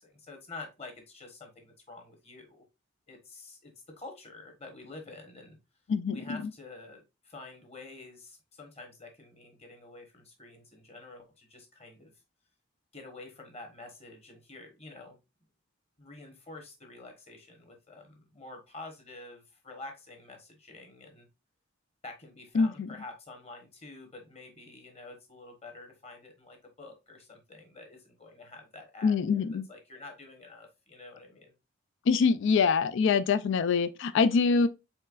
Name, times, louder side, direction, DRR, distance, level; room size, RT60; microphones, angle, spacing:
voice 1, 0.0-2.6 3.1-5.6 6.1-12.1 12.9-15.2 16.0-21.3 22.0-31.5, left 2 dB, 30° left, 1.2 m, -48 dB
voice 2, 5.9-6.4 22.5-22.9 29.0-29.7 32.1-34.7, left 5 dB, 60° left, 0.3 m, -25 dB
4.4 x 4.0 x 2.4 m
head